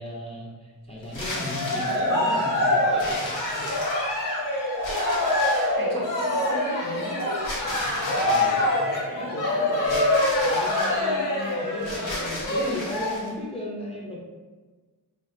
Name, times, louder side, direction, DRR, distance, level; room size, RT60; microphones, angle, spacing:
voice 1, 0.0-3.8 7.8-10.1 10.4-14.2, left 1 dB, 15° left, -5 dB, 0.4 m, -36 dB
sound 1, 1.0-2.1 3.0-4.2 4.8-5.8 7.4-8.6 9.8-11.0 11.8-13.3, left 1 dB, 80° left, 0.8 m, -36 dB
Cheering, 1.3-13.1, left 1 dB, 45° left, 0.7 m, -25 dB
voice 2, 4.7-7.4, right 1 dB, 50° right, -2 dB, 0.7 m, -36 dB
2.8 x 2.0 x 2.7 m, 1.3 s
wide cardioid pair, 85°, 44 cm